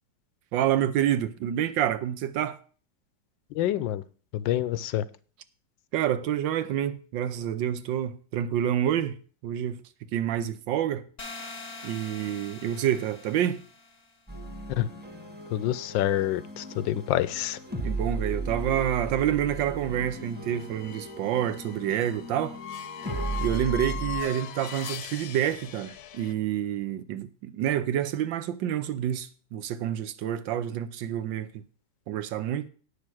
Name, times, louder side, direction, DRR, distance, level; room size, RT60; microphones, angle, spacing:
voice 1, 0.5-2.6 5.9-9.2 9.4-9.8 10.1-11.0 11.8-13.6 17.8-22.6 23.4-31.6 32.1-32.7, right 10 dB, 85° right, 1.5 m, -28 dB
voice 2, 3.5-4.0 4.3-5.0 14.8-14.9 15.5-17.6, left 12 dB, 90° left, 1.4 m, -27 dB
sound 1, 11.2-14.1, left 3 dB, 30° left, 0.9 m, -43 dB
sound 2, 14.3-24.2, right 2 dB, 5° right, 1.2 m, -36 dB
sound 3, 18.6-26.3, left 10 dB, 65° left, 1.1 m, -41 dB
9.8 x 6.6 x 6.1 m
omnidirectional pair, 2.0 m